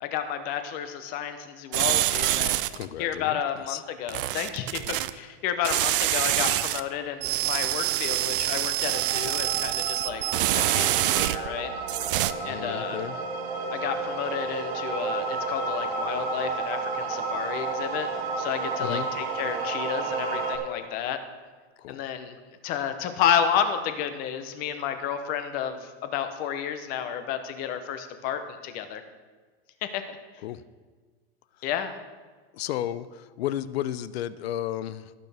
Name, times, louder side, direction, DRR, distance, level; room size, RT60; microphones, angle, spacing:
voice 1, 0.0-2.6 3.0-10.2 10.5-11.7 12.4-13.0 13.7-18.1 18.4-21.2 21.9-22.4 22.6-29.0 29.8-30.2 31.6-31.9, left 8 dB, 30° left, 9 dB, 0.8 m, -31 dB
sound 1, 1.7-2.9 4.1-5.1 5.6-6.8 7.2-11.6 11.9-12.3, right 15 dB, 60° right, 0.5 m, -26 dB
voice 2, 2.7-3.8 12.2-13.2 18.8-19.1 21.8-22.1 30.4-30.6 31.6-31.7 32.5-35.1, left 12 dB, 80° left, 16 dB, 0.6 m, -33 dB
sound 2, 8.9-20.6, right 3 dB, 85° right, 1.7 m, -32 dB
18.0 x 6.5 x 3.5 m, 1.4 s
supercardioid pair, 165°, 31 cm